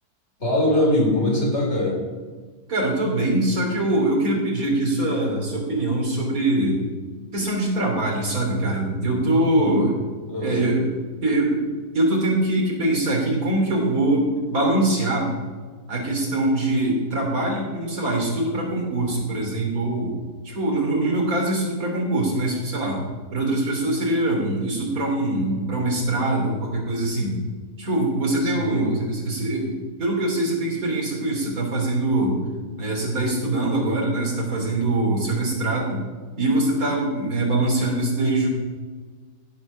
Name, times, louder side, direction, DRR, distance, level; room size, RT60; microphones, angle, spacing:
voice 1, 0.4-2.0 9.3-9.8 10.3-10.6 28.4-28.9, left 1 dB, 40° left, -3 dB, 4.4 m, -23 dB
voice 2, 2.7-6.8 7.3-10.0 10.4-10.9 11.2-11.6 11.9-15.3 15.9-20.2 20.4-23.0 23.3-27.4 27.8-32.4 32.8-36.1 36.4-38.5, right 1 dB, 60° right, -1 dB, 3.7 m, -23 dB
16.0 x 8.1 x 6.3 m, 1.5 s
omnidirectional pair, 1.7 m